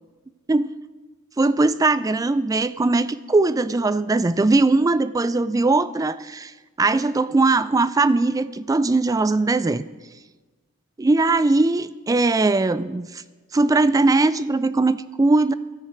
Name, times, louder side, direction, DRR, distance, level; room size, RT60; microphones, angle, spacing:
voice 1, 1.4-6.5 6.8-9.8 11.0-13.2 13.5-15.5, right 3 dB, 15° right, 16 dB, 0.3 m, -20 dB
13.0 x 9.7 x 4.5 m, 1.3 s
head